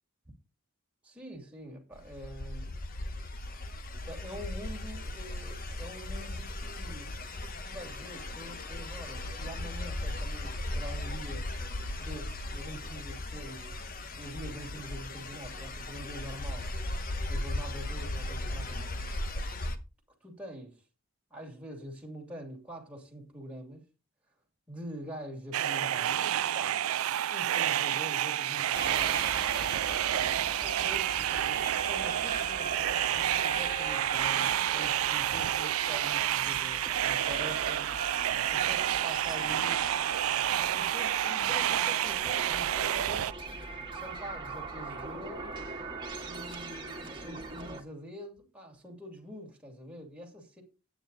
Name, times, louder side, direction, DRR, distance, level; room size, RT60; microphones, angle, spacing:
voice 1, 1.0-2.8 4.1-7.1 7.6-11.5 12.0-13.8 14.2-16.7 17.3-19.0 20.2-20.8 21.3-23.8 24.7-26.8 27.3-29.2 30.1-31.3 31.8-37.9 38.5-39.9 40.3-43.4 43.9-45.5 46.2-50.6, equal, 5° right, 2.5 m, -45 dB
sound 1, 2.0-19.8, left 1 dB, 45° left, 1.2 m, -37 dB
sound 2, 25.5-43.3, right 11 dB, 80° right, 0.4 m, -29 dB
sound 3, 28.7-47.8, right 3 dB, 25° right, 2.0 m, -40 dB
9.7 x 8.8 x 4.0 m
head